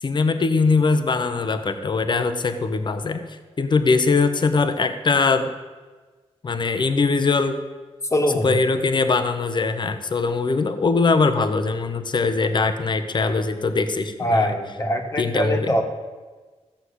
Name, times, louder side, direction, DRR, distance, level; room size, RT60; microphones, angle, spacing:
voice 1, 0.0-3.2 3.6-5.5 6.4-7.6 8.4-14.5 15.2-15.8, left 4 dB, 45° left, 8 dB, 0.9 m, -21 dB
voice 2, 8.1-8.6 14.2-15.8, equal, 25° left, 3 dB, 1.6 m, -22 dB
14.5 x 6.5 x 8.2 m, 1.3 s
wide cardioid pair, 120°, 11 cm